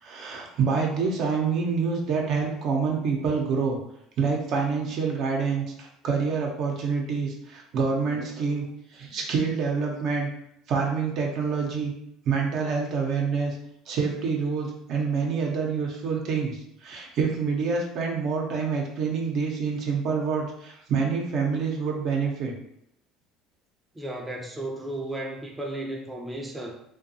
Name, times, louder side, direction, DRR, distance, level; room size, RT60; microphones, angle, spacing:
voice 1, 0.0-3.8 4.2-10.3 10.7-11.9 12.2-13.5 13.9-22.5, right 5 dB, 60° right, 0 dB, 0.6 m, -27 dB
voice 2, 24.0-26.7, right 1 dB, 10° right, 0 dB, 0.5 m, -34 dB
2.5 x 2.3 x 2.7 m, 0.76 s
hypercardioid pair, 80°, 0 cm